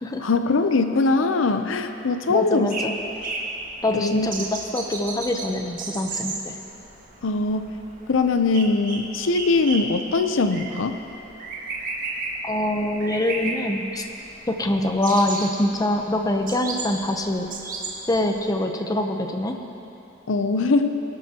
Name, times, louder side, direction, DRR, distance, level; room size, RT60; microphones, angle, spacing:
voice 1, 0.2-2.7 3.9-4.3 7.2-7.7 8.1-11.0 20.3-20.9, left 3 dB, 80° left, 8 dB, 0.6 m, -21 dB
voice 2, 2.3-2.9 3.8-6.6 12.4-14.0 14.5-17.5 18.1-19.6, left 1 dB, 20° left, 4 dB, 0.7 m, -24 dB
sound 1, 2.7-18.5, right 3 dB, 45° right, 1.7 m, -34 dB
22.0 x 12.0 x 2.9 m, 3.0 s
head